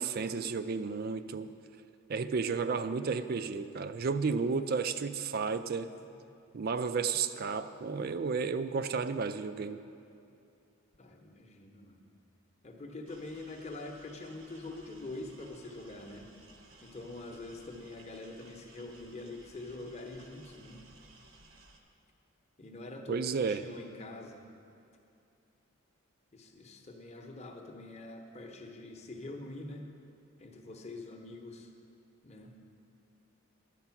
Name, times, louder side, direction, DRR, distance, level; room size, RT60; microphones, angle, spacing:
voice 1, 0.0-1.5 2.1-5.9 6.5-9.8 23.1-23.6, right 5 dB, 45° right, 12 dB, 0.3 m, -32 dB
voice 2, 5.8-6.1 11.0-12.1 12.6-16.3 16.8-20.8 22.6-24.4 26.3-29.9 30.4-31.7 32.2-32.5, left 2 dB, 30° left, 3 dB, 0.8 m, -45 dB
sound 1, 13.1-21.8, right 2 dB, 70° right, 0.9 m, -58 dB
11.0 x 7.8 x 5.8 m, 2.6 s
head